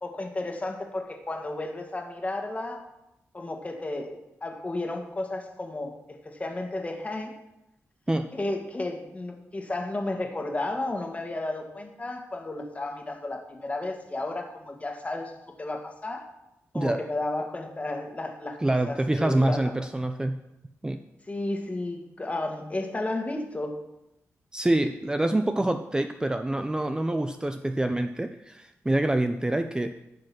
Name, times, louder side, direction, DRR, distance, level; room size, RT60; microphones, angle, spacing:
voice 1, 0.0-2.8 3.3-7.3 8.3-15.3 15.6-16.3 16.7-18.6 18.9-19.7 21.3-23.8, left 2 dB, 25° left, 3 dB, 1.7 m, -33 dB
voice 2, 18.6-20.4 20.8-21.0 24.5-29.9, right 1 dB, 15° right, 7 dB, 0.5 m, -26 dB
14.0 x 5.3 x 6.0 m, 0.88 s
cardioid pair, 90°, 5 cm